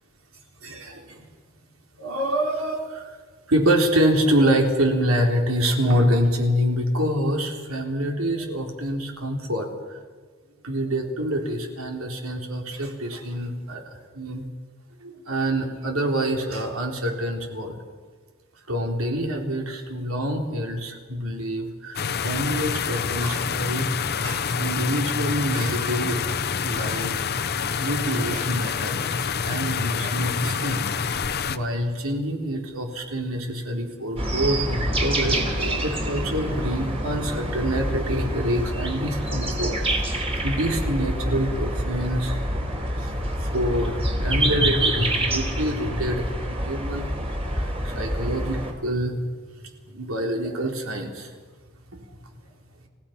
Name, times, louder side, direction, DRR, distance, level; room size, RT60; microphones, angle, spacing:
voice 1, 0.6-1.2 2.0-3.2 3.5-10.0 10.6-14.4 15.0-17.8 18.7-23.9 24.2-26.2 26.6-27.3 27.8-47.1 47.6-49.2 49.9-51.3, equal, 75° right, 2 dB, 3.6 m, -26 dB
sound 1, 21.9-31.6, left 6 dB, 50° left, 0.9 m, -27 dB
sound 2, 34.2-48.7, right 1 dB, 30° right, 3.5 m, -27 dB
30.0 x 16.5 x 5.8 m, 1.5 s
head